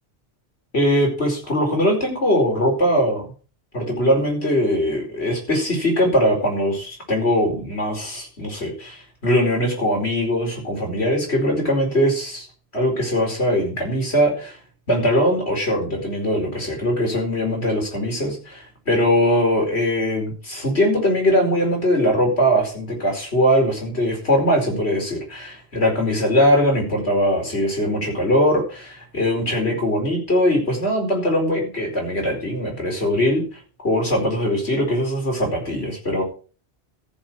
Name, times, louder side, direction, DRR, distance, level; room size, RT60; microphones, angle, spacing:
voice 1, 0.7-3.3 3.7-12.5 12.7-14.6 14.9-33.4 33.8-36.2, equal, 80° left, 0 dB, 5.0 m, -21 dB
14.5 x 6.5 x 6.2 m, 0.37 s
omnidirectional pair, 1.1 m